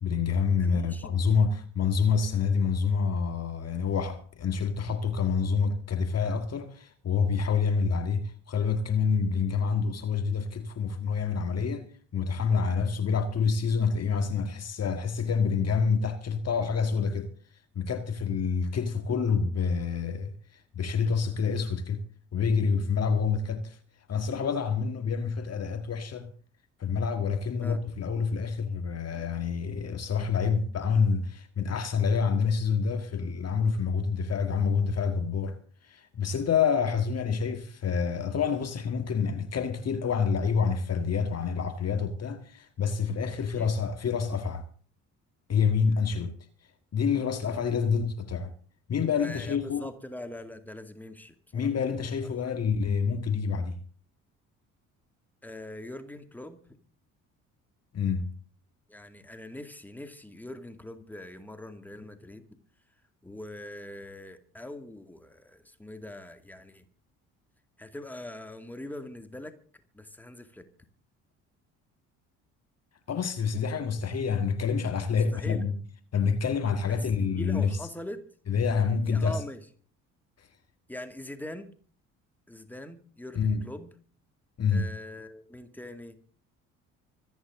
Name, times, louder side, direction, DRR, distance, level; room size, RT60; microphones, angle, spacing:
voice 1, 0.0-11.9 12.1-17.3 17.8-22.0 22.3-23.8 24.1-26.3 26.8-35.6 35.8-44.6 45.5-46.4 46.9-48.5 48.9-49.9 51.5-53.8 57.9-58.3 73.1-75.8 76.1-77.8 78.5-79.4 83.4-83.6 84.6-84.9, left 5 dB, 35° left, 1.7 m, -27 dB
voice 2, 0.6-1.1 27.6-27.8 43.5-43.7 49.2-51.7 52.3-52.4 55.4-56.6 58.9-62.6 63.2-66.9 67.8-69.5 69.9-70.7 75.2-75.6 76.9-78.3 79.0-79.6 80.9-81.7 82.5-83.9 84.7-86.2, left 1 dB, 5° left, 2.3 m, -42 dB
25.5 x 9.2 x 3.7 m
figure-of-eight pair, 50°, 41 cm